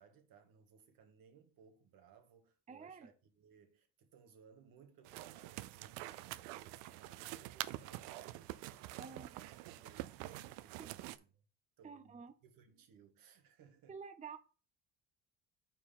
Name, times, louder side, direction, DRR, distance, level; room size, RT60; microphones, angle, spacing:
voice 1, 0.0-11.4 11.8-14.0, right 7 dB, 65° right, 1.6 m, -64 dB
voice 2, 2.7-3.1 9.0-9.3 10.8-10.9 11.8-12.3 13.9-14.4, right 5 dB, 20° right, 0.6 m, -49 dB
sound 1, 5.0-11.2, right 16 dB, 85° right, 0.5 m, -46 dB
4.9 x 4.5 x 5.6 m
supercardioid pair, 75°, 37 cm